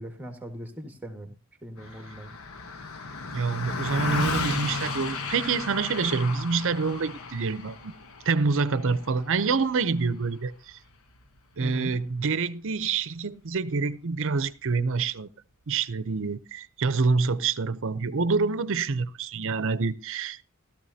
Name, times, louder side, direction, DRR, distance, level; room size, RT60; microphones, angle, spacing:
voice 1, 0.0-1.3 1.6-2.3 11.6-11.9, equal, 10° right, 1.8 m, -38 dB
Car passing by, 1.8-11.4, left 3 dB, 65° left, 1.2 m, -34 dB
voice 2, 3.3-7.9 8.3-10.8 11.6-15.3 15.7-20.4, right 4 dB, 60° right, 0.7 m, -27 dB
17.0 x 13.0 x 2.8 m
head